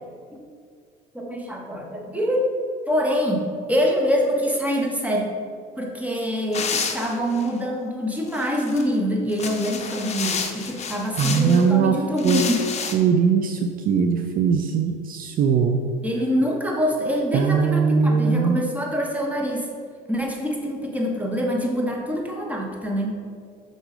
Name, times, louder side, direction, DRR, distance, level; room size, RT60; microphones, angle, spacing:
voice 1, 1.1-2.5 2.9-5.3 5.8-12.6 16.0-19.7 20.1-23.1, equal, 10° right, -1 dB, 1.3 m, -25 dB
sound 1, 6.5-7.5 8.3-8.8 9.3-11.7 12.2-13.0, left 5 dB, 35° left, 0.7 m, -30 dB
voice 2, 11.2-11.9 12.2-12.4 12.9-13.6 13.9-15.8 17.3-18.6, right 6 dB, 50° right, 5 dB, 0.5 m, -20 dB
6.1 x 4.0 x 5.1 m, 2.2 s
supercardioid pair, 95°, 18 cm